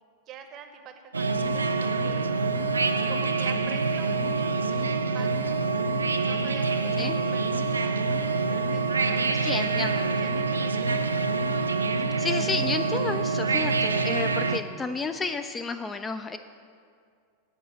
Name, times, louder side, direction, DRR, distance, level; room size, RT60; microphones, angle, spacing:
voice 1, 0.3-2.3 3.1-5.6 6.1-8.0 8.3-9.5 10.0-11.0, right 7 dB, 35° right, 7 dB, 0.8 m, -45 dB
sound 1, 1.1-14.6, right 4 dB, 75° right, 0.4 m, -26 dB
voice 2, 9.4-10.2 12.2-16.4, left 4 dB, 15° left, 8 dB, 0.3 m, -31 dB
7.9 x 5.3 x 7.4 m, 2.2 s
figure-of-eight pair, 90°, 0 cm